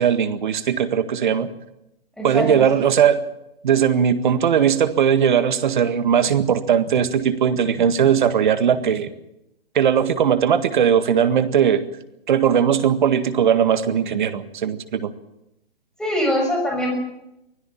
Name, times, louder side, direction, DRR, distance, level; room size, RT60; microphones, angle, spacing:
voice 1, 0.0-1.5 2.2-3.2 3.6-9.1 9.8-11.8 12.3-15.1, right 8 dB, 50° right, 11 dB, 1.8 m, -19 dB
voice 2, 2.2-2.8 16.0-16.9, left 1 dB, ahead, 1 dB, 6.3 m, -23 dB
24.5 x 16.5 x 7.3 m, 0.86 s
figure-of-eight pair, 130°, 30 cm